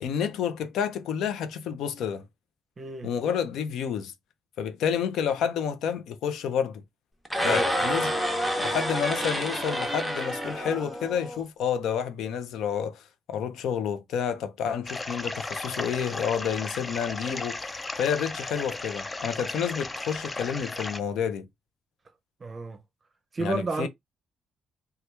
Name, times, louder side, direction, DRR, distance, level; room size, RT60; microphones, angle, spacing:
voice 1, 0.0-2.2 3.0-4.1 4.6-6.8 7.4-8.2 8.6-17.6 18.0-21.5 23.4-23.9, left 8 dB, 80° left, 0.5 m, -29 dB
voice 2, 2.8-3.1 7.4-7.7 22.4-22.8 23.3-23.9, right 3 dB, 35° right, 0.6 m, -31 dB
sound 1, 7.2-11.4, equal, 5° left, 0.9 m, -28 dB
sound 2, 14.9-21.0, left 2 dB, 20° left, 0.4 m, -35 dB
2.9 x 2.3 x 3.3 m
cardioid pair, 90°, 0 cm